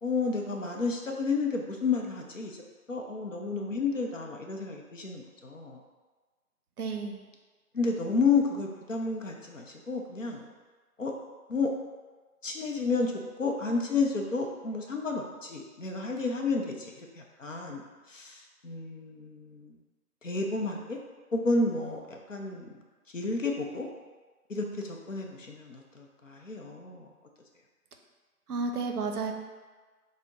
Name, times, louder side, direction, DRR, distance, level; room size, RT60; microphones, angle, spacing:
voice 1, 0.0-2.6 2.9-5.8 7.7-10.4 11.0-11.1 11.5-11.7 12.4-13.1 13.4-17.8 18.1-19.8 20.2-21.0 21.3-22.7 23.1-23.9 24.5-27.1, left 4 dB, 55° left, 1 dB, 0.5 m, -31 dB
voice 2, 6.8-7.2 28.5-29.3, right 4 dB, 75° right, 4 dB, 0.6 m, -31 dB
3.5 x 2.1 x 3.9 m, 1.3 s
figure-of-eight pair, 175°, 46 cm